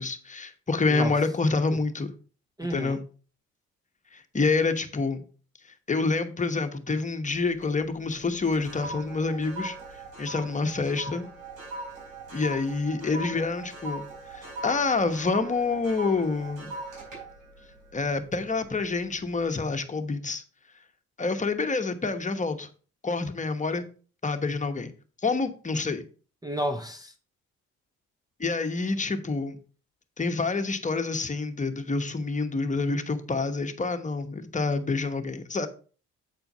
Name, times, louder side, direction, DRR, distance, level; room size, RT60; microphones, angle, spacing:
voice 1, 0.0-2.1 2.7-3.0 4.1-5.2 5.9-9.8 10.2-11.3 12.3-16.7 17.9-20.4 21.2-22.7 23.0-23.9 24.2-24.9 25.2-26.0 28.4-29.6 30.2-35.7, left 3 dB, 25° left, 1.1 m, -27 dB
voice 2, 2.6-3.0 26.4-27.1, equal, 10° right, 0.7 m, -31 dB
sound 1, 7.3-7.8 8.1-18.7 19.1-19.4, right 2 dB, 90° right, 3.9 m, -40 dB
8.5 x 4.4 x 5.4 m
cardioid pair, 90°, 30 cm